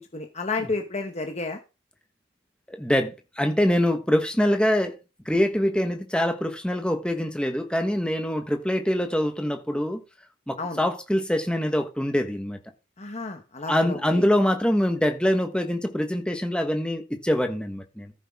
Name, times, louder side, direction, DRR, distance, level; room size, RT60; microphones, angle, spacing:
voice 1, 0.0-1.6 10.6-10.8 13.0-14.0, left 3 dB, 30° left, 1.1 m, -31 dB
voice 2, 2.7-5.0 5.2-10.0 10.5-12.6 13.6-18.1, equal, 5° left, 1.2 m, -24 dB
14.0 x 7.1 x 3.6 m
head